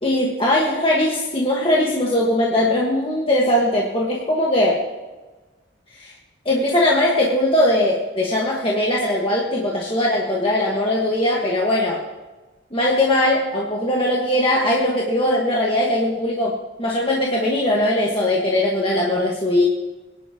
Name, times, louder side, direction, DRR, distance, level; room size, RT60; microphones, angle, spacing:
voice 1, 0.0-4.8 6.0-6.1 6.5-12.0 12.7-19.6, left 1 dB, 30° left, -4 dB, 1.7 m, -20 dB
23.0 x 10.5 x 3.1 m, 1.2 s
head